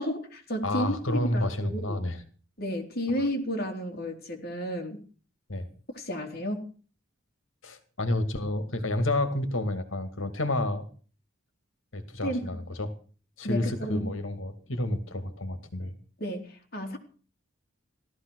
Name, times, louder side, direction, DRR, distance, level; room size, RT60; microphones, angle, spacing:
voice 1, 0.0-2.0 2.6-5.0 5.9-6.7 12.2-12.4 13.4-14.1 16.2-17.0, equal, 50° left, 3 dB, 3.6 m, -32 dB
voice 2, 0.6-2.2 3.1-3.2 5.5-5.7 7.6-10.9 11.9-12.9 13.4-15.9, left 1 dB, 85° left, 9 dB, 2.3 m, -30 dB
16.5 x 13.5 x 6.4 m, 0.41 s
head